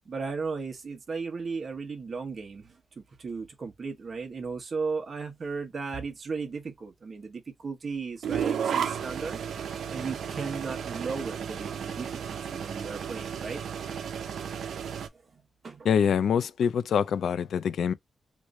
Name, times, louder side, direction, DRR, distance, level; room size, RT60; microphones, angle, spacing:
voice 1, 0.1-9.4 9.9-12.1 12.5-13.6 15.6-15.9, right 4 dB, 35° right, 0.9 m, -35 dB
sound 1, 8.2-15.1, right 8 dB, 85° right, 0.5 m, -33 dB
voice 2, 15.8-17.9, left 7 dB, 75° left, 0.4 m, -25 dB
3.1 x 2.5 x 3.1 m
wide cardioid pair, 180°, 0 cm